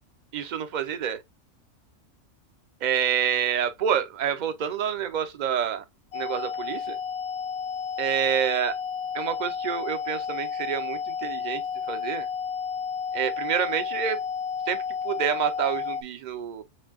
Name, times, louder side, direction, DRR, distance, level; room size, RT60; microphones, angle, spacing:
voice 1, 0.3-1.2 2.8-5.8 6.1-7.0 8.0-8.7 9.1-11.6 11.9-12.3 13.1-14.2 14.7-16.6, right 8 dB, 50° right, 0.5 m, -28 dB
sound 1, 6.1-16.0, left 6 dB, 65° left, 0.7 m, -32 dB
5.4 x 2.6 x 2.3 m
omnidirectional pair, 1.3 m